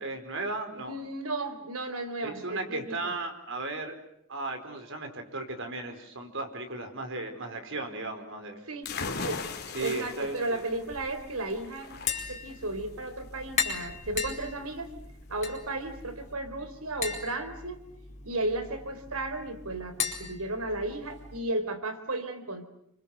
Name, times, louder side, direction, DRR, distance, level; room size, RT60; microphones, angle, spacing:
voice 1, 0.0-1.0 2.2-4.0 4.3-8.6 9.7-10.6, right 2 dB, 60° right, 6 dB, 4.9 m, -36 dB
voice 2, 0.8-3.1 8.7-9.4 9.8-11.9 12.3-14.9 15.3-17.8 18.2-22.6, right 2 dB, 85° right, 9 dB, 3.9 m, -34 dB
sound 1, 8.8-16.3, left 4 dB, 50° left, 2.8 m, -40 dB
Tap, 11.9-21.4, left 6 dB, 35° left, 4.8 m, -38 dB
28.5 x 25.0 x 8.0 m, 0.73 s
head